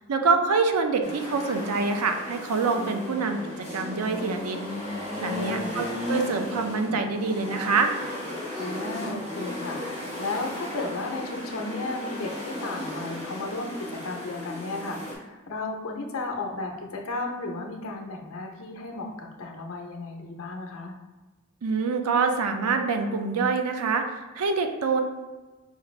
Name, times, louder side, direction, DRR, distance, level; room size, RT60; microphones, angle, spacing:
voice 1, 0.1-4.6 5.2-7.9 21.6-25.0, right 4 dB, 85° right, 6 dB, 0.5 m, -25 dB
sound 1, 1.0-15.1, left 1 dB, 30° right, 1.1 m, -35 dB
voice 2, 5.3-5.8 8.5-20.9, left 2 dB, 70° left, 2 dB, 0.6 m, -34 dB
5.1 x 2.5 x 3.1 m, 1.2 s
head